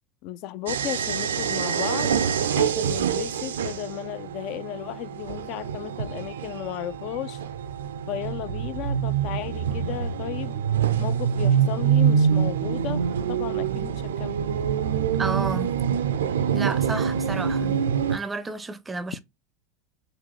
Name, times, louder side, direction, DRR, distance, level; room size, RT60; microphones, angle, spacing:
voice 1, 0.2-2.2 2.6-7.4 8.1-10.6 11.0-13.0 13.3-14.4, left 13 dB, 55° left, 0.4 m, -34 dB
sound 1, 0.7-18.2, right 8 dB, 80° right, 0.4 m, -25 dB
voice 2, 15.2-15.7 16.5-17.8 18.1-19.2, right 3 dB, 15° right, 0.5 m, -31 dB
3.8 x 2.3 x 3.0 m
hypercardioid pair, 90°, 0 cm